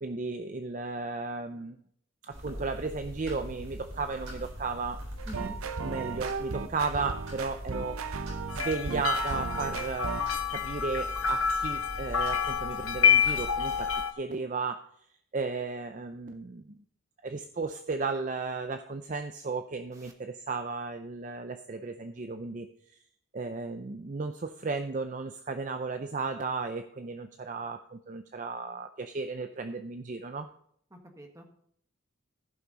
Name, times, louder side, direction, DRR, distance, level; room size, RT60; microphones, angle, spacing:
voice 1, 0.0-1.8 2.2-5.0 5.8-8.0 8.5-10.1 10.5-13.9 14.2-14.8 15.3-16.8 17.2-23.0 23.3-30.5, right 4 dB, 35° right, 8 dB, 0.5 m, -34 dB
sound 1, 2.3-13.9, equal, 70° right, 4.0 m, -42 dB
sound 2, 5.2-10.3, right 4 dB, 85° right, 0.7 m, -36 dB
voice 2, 5.3-5.6 19.9-20.1 30.9-31.4, right 2 dB, 15° right, 3 dB, 1.4 m, -44 dB
sound 3, 8.5-14.1, left 7 dB, 70° left, 1.1 m, -28 dB
14.5 x 5.8 x 4.0 m, 0.67 s
head